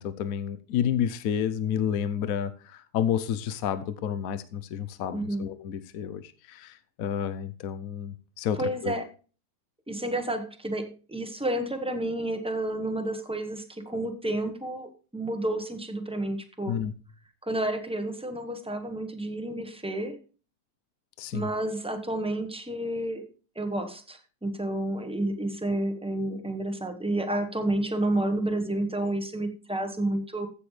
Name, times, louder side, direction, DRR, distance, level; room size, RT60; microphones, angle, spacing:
voice 1, 0.0-8.9 16.7-16.9 21.2-21.5, left 9 dB, 65° left, 1.0 m, -30 dB
voice 2, 5.1-5.5 8.6-9.1 9.9-16.8 17.4-20.2 21.3-23.3 23.5-30.5, right 1 dB, 5° right, 0.8 m, -30 dB
15.0 x 7.0 x 3.2 m
omnidirectional pair, 1.7 m